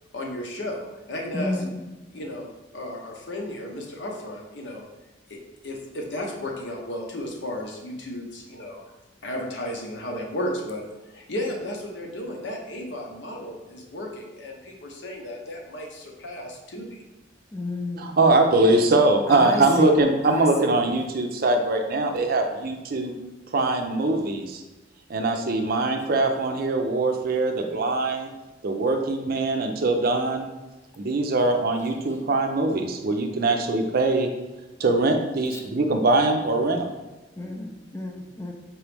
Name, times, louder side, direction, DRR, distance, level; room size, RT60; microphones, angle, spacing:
voice 1, 0.1-1.6 2.1-2.5 2.7-4.8 5.3-5.4 5.6-8.8 9.2-10.8 11.1-17.0, left 1 dB, 70° left, 0 dB, 0.8 m, -34 dB
voice 2, 1.3-1.8 17.5-18.2 19.3-19.9 20.3-20.8 37.4-38.5, left 2 dB, 15° left, 2 dB, 0.5 m, -31 dB
voice 3, 18.0-23.1 23.5-24.6 25.1-28.3 28.6-30.5 31.0-34.3 34.8-36.9, right 2 dB, 55° right, 4 dB, 0.5 m, -22 dB
4.6 x 3.0 x 3.4 m, 1.1 s
head